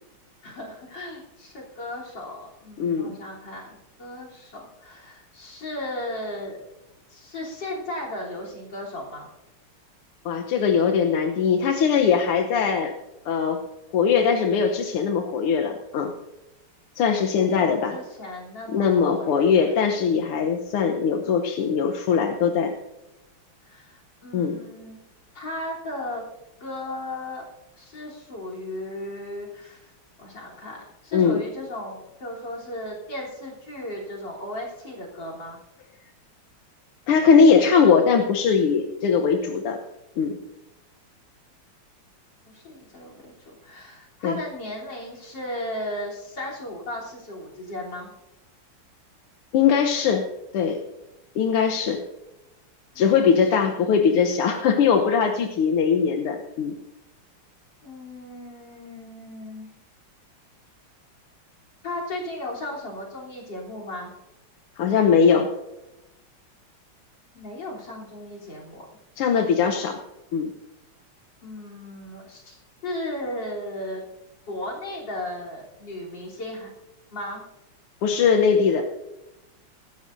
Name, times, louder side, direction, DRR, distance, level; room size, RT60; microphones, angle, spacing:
voice 1, 0.4-6.6 7.1-9.3 17.3-19.5 23.6-25.0 25.3-26.2 26.6-27.4 27.8-29.9 30.2-35.6 42.5-48.1 52.9-53.4 53.6-53.7 57.8-59.7 61.8-64.1 67.3-68.9 71.4-72.6 72.8-74.0 74.5-76.7 77.1-77.4, left 1 dB, 55° left, -3 dB, 4.0 m, -36 dB
voice 2, 2.8-3.2 10.3-12.9 13.3-13.6 13.9-16.1 17.0-18.0 18.7-22.7 24.3-24.6 31.1-31.4 37.1-39.8 40.2-40.4 44.2-44.4 49.5-50.3 50.5-50.8 51.4-52.0 53.0-56.8 64.8-65.5 69.2-70.0 70.3-70.5 78.0-78.8, left 6 dB, 85° left, 3 dB, 1.9 m, -20 dB
18.5 x 15.0 x 2.6 m, 0.97 s
omnidirectional pair, 2.4 m